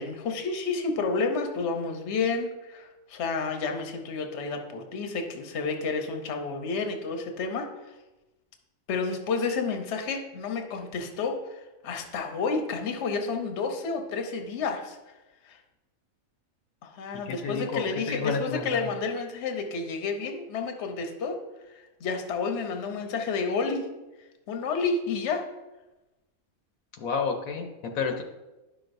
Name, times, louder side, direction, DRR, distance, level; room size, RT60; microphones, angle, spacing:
voice 1, 0.0-7.9 8.9-15.0 15.4-15.6 16.8-21.4 22.0-23.9 24.5-25.4, left 4 dB, 60° left, 4 dB, 1.0 m, -30 dB
voice 2, 17.3-18.8 26.9-28.2, left 5 dB, 75° left, 4 dB, 1.1 m, -30 dB
10.0 x 6.0 x 2.6 m, 1.1 s
omnidirectional pair, 1.5 m